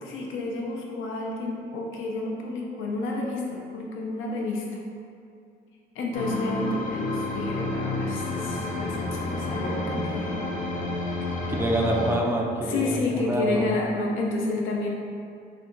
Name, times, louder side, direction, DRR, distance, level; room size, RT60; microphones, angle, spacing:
voice 1, 0.0-4.6 5.9-10.4 11.2-11.5 12.6-14.9, left 2 dB, 80° left, -1 dB, 0.6 m, -30 dB
sound 1, 6.1-12.1, left 2 dB, 40° left, 0.6 m, -30 dB
voice 2, 11.5-13.7, right 1 dB, 10° right, 0 dB, 0.4 m, -26 dB
3.4 x 2.8 x 2.5 m, 2.4 s
cardioid pair, 90°, 20 cm